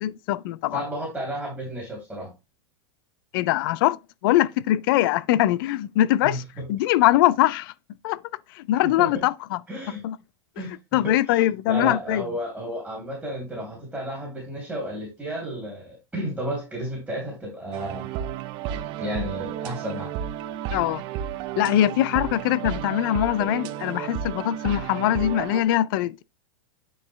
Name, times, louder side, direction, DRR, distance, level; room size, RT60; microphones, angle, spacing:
voice 1, 0.0-0.8 3.3-4.0 4.2-6.4 6.7-7.7 8.0-8.2 8.5-9.6 10.0-10.2 10.9-12.2 20.7-21.0 21.6-26.2, left 14 dB, 45° left, 0.4 m, -22 dB
voice 2, 0.7-2.3 6.2-6.7 8.8-9.2 9.7-10.0 10.6-18.1 19.0-20.1, equal, 5° right, 2.8 m, -33 dB
sound 1, 17.7-25.6, right 10 dB, 35° right, 0.7 m, -32 dB
9.4 x 4.6 x 3.1 m
supercardioid pair, 155°, 15 cm